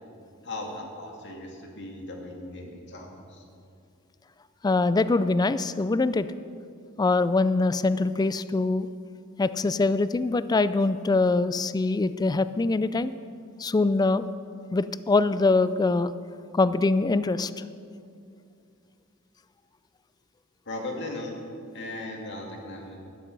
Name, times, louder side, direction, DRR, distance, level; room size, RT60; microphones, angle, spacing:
voice 1, 0.4-3.4 20.7-21.3 21.7-23.0, left 2 dB, 55° left, 1 dB, 2.1 m, -37 dB
voice 2, 4.6-6.3 7.0-8.9 9.4-13.1 13.6-14.3 14.7-16.1 16.5-17.5, left 3 dB, 20° left, 14 dB, 0.3 m, -23 dB
12.0 x 12.0 x 5.3 m, 2.4 s
head